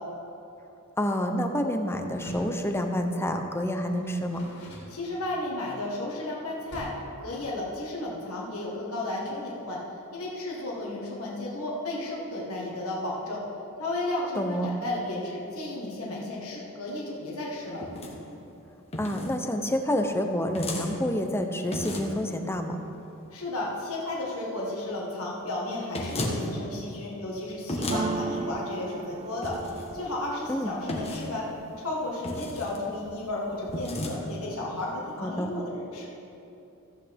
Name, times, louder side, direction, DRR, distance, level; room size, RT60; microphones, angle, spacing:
voice 1, 1.0-4.4 14.3-14.7 19.0-22.8 30.5-30.7 35.2-35.5, equal, 10° left, 5 dB, 0.7 m, -28 dB
Door, 2.1-2.6 3.8-5.5 6.7-7.2, equal, 50° left, 2.7 m, -46 dB
voice 2, 4.9-6.9 7.2-9.8 10.1-13.4 13.8-17.8 23.3-31.5 31.8-36.1, left 2 dB, 70° left, -4 dB, 1.6 m, -33 dB
sound 1, 17.8-18.1 18.9-19.3 20.6-20.9 21.7-22.2 25.9-26.4 27.7-28.0 29.4-29.9 30.9-31.3 32.2-32.8 33.7-34.2, left 1 dB, 30° left, 1.3 m, -33 dB
sound 2, 27.9-31.8 32.2-32.8 33.1-33.9, right 3 dB, 30° right, 0.4 m, -36 dB
14.5 x 8.3 x 3.5 m, 2.8 s
head